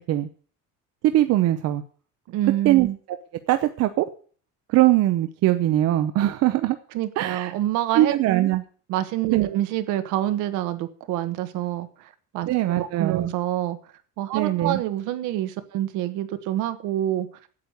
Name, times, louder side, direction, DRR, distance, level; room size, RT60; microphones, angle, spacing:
voice 1, 1.0-1.8 2.6-2.9 3.5-4.1 4.7-6.8 7.2-7.5 7.9-8.6 9.3-9.5 12.5-13.3 14.3-14.8, right 14 dB, 50° right, 9 dB, 0.7 m, -21 dB
voice 2, 2.3-3.0 6.9-8.1 8.9-11.9 12.3-12.5 12.7-13.8 14.2-17.3, right 13 dB, 70° right, 10 dB, 1.4 m, -26 dB
8.6 x 8.2 x 8.2 m, 0.43 s
cardioid pair, 165°, 31 cm